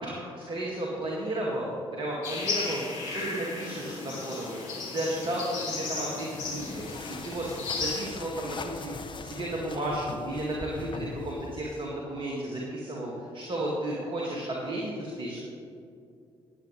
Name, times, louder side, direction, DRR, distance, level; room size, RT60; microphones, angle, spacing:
voice 1, 0.0-6.8 7.3-7.4 7.8-8.9 9.2-15.4, right 1 dB, 35° right, -3 dB, 2.2 m, -33 dB
sound 1, 2.2-8.0, left 3 dB, 60° left, 3.0 m, -35 dB
sound 2, 6.4-12.0, left 4 dB, 35° left, 0.9 m, -42 dB
20.0 x 8.9 x 3.3 m, 2.4 s
figure-of-eight pair, 40°, 14 cm